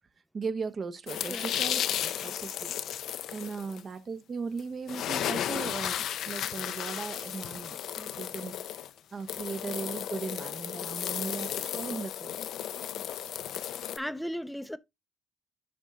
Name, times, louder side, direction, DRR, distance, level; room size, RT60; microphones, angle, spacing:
voice 1, 0.3-2.7 3.3-8.6 9.1-12.5, right 4 dB, 45° right, 1.1 m, -38 dB
sound 1, 1.1-3.8 4.6-4.7 4.9-14.0, left 10 dB, 75° left, 0.6 m, -34 dB
voice 2, 14.0-14.8, equal, 5° left, 0.6 m, -35 dB
11.0 x 4.1 x 3.7 m
cardioid pair, 90°, 0 cm